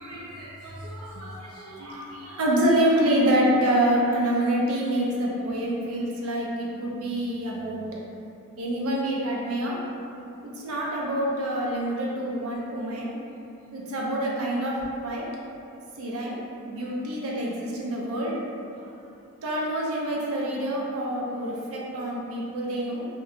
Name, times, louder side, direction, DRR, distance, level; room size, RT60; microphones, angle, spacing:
voice 1, 0.0-7.8 8.6-9.8 10.4-13.1 13.7-15.2 16.0-16.4 16.6-18.4 19.4-23.1, right 1 dB, 75° right, -3 dB, 0.5 m, -27 dB
3.0 x 2.2 x 2.4 m, 2.6 s
head